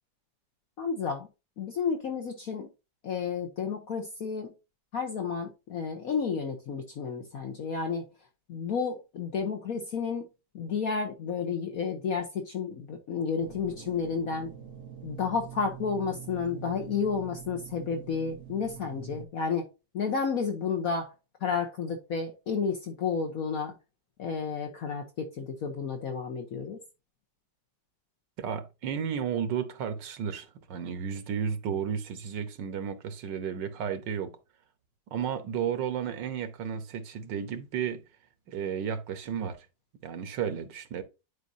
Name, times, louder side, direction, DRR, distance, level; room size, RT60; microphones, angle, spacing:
voice 1, 0.8-1.3 1.6-2.7 3.0-4.5 4.9-8.0 8.5-10.3 10.5-14.5 15.0-19.7 19.9-21.1 21.4-23.7 24.2-26.8, left 5 dB, 55° left, 1.3 m, -31 dB
sound 1, 13.4-19.2, right 8 dB, 55° right, 1.5 m, -45 dB
voice 2, 28.4-34.3 35.1-38.0 38.5-39.7 40.0-41.0, right 7 dB, 85° right, 1.6 m, -33 dB
10.5 x 4.9 x 2.7 m
omnidirectional pair, 1.9 m